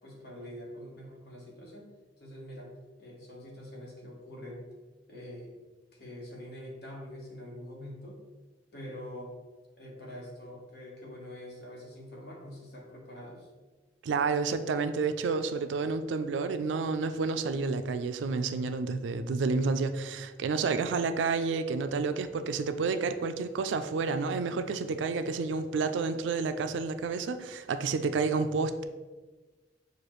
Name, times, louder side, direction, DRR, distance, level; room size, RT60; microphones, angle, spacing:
voice 1, 0.0-1.9 2.2-2.7 3.0-4.6 5.1-5.6 5.9-8.2 8.7-9.3 9.8-13.5, left 1 dB, 60° left, -2 dB, 1.2 m, -45 dB
voice 2, 14.0-28.8, right 4 dB, 90° right, 9 dB, 0.3 m, -30 dB
6.5 x 2.4 x 3.1 m, 1.3 s
head